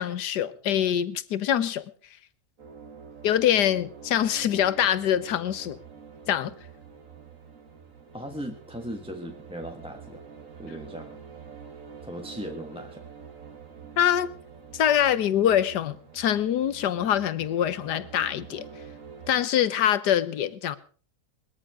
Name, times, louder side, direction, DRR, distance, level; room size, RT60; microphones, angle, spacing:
voice 1, 0.0-1.8 3.2-5.8 6.3-6.5 14.0-14.3 14.7-18.7 19.3-20.8, left 10 dB, 80° left, 1.5 m, -24 dB
sound 1, 2.6-19.3, right 6 dB, 50° right, 2.6 m, -46 dB
voice 2, 8.1-10.2 10.6-11.2 12.0-13.0, equal, 5° right, 1.2 m, -38 dB
21.0 x 13.5 x 4.9 m
omnidirectional pair, 1.8 m